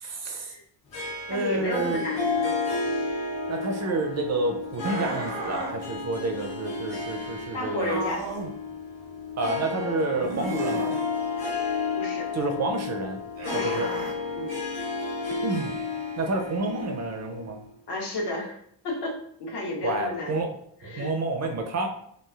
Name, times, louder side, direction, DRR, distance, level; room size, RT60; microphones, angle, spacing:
voice 1, 0.0-0.5 1.3-2.0 3.5-8.0 9.4-10.9 12.3-13.2 13.5-13.9 15.4-15.7 16.2-17.6 19.8-20.5 20.8-21.9, right 2 dB, 40° right, 3 dB, 0.5 m, -29 dB
Harp, 0.9-17.7, left 4 dB, 85° left, 1.1 m, -32 dB
voice 2, 1.3-2.5 2.8-3.1 7.5-8.3 12.0-12.3 13.5-13.8 14.4-14.6 17.9-18.6 18.8-20.4 20.8-21.1, left 2 dB, 65° left, -1 dB, 1.0 m, -32 dB
sound 1, 4.8-5.8 7.8-8.5 10.2-11.0 13.3-14.2, right 3 dB, 75° right, 0.8 m, -34 dB
3.2 x 2.4 x 2.4 m, 0.67 s
cardioid pair, 120°, 44 cm